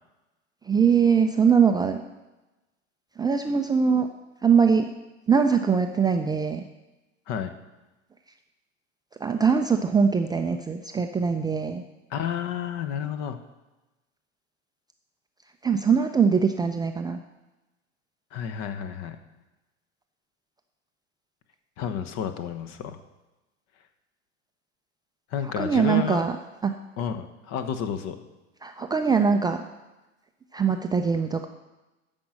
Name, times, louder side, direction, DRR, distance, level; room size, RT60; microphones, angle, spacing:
voice 1, 0.7-2.0 3.2-4.1 4.4-4.9 5.3-6.6 9.2-11.8 15.6-17.2 25.6-26.3 26.6-26.7 28.6-29.6 30.5-31.5, right 6 dB, 10° right, 5 dB, 0.4 m, -22 dB
voice 2, 12.1-13.4 18.3-19.2 21.8-23.0 25.3-26.2 27.0-28.2, left 8 dB, 45° left, 9 dB, 1.1 m, -31 dB
12.5 x 5.2 x 7.5 m, 1.1 s
figure-of-eight pair, 80°, 37 cm